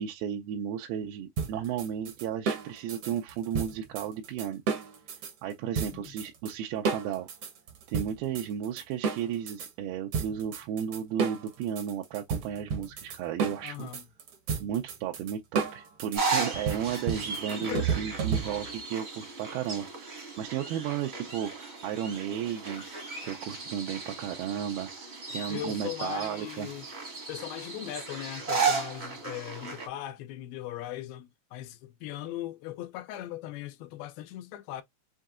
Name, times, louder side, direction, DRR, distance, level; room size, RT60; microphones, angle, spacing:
voice 1, 0.0-4.6 5.4-7.3 7.9-13.9 14.6-22.8 23.2-26.7, right 9 dB, 90° right, 2.6 m, -34 dB
sound 1, 1.4-5.3 5.7-6.5 6.8-9.7 10.1-18.8, right 5 dB, 70° right, 1.3 m, -32 dB
voice 2, 5.8-6.1 13.6-14.0 17.6-18.0 25.5-26.9 27.3-34.8, left 13 dB, 85° left, 2.6 m, -39 dB
sound 2, 16.1-29.9, right 4 dB, 45° right, 0.8 m, -35 dB
6.4 x 2.7 x 2.4 m
omnidirectional pair, 4.2 m